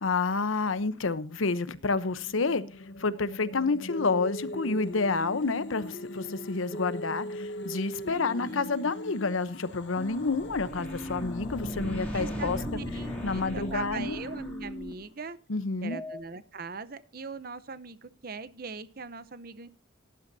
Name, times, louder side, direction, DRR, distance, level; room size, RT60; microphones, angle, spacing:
voice 1, 0.0-2.6 3.0-12.6 13.2-14.2 15.5-16.0, left 4 dB, 90° left, 0.9 m, -29 dB
sound 1, 1.4-14.7, left 2 dB, 60° left, 0.8 m, -47 dB
sound 2, 3.9-9.3 10.0-14.9 15.9-16.2, equal, 25° left, 1.4 m, -39 dB
voice 2, 8.0-8.7 12.1-15.4 15.8-19.7, right 4 dB, 50° right, 0.8 m, -41 dB
sound 3, 9.7-15.1, equal, 5° left, 3.1 m, -40 dB
18.0 x 11.5 x 2.7 m
head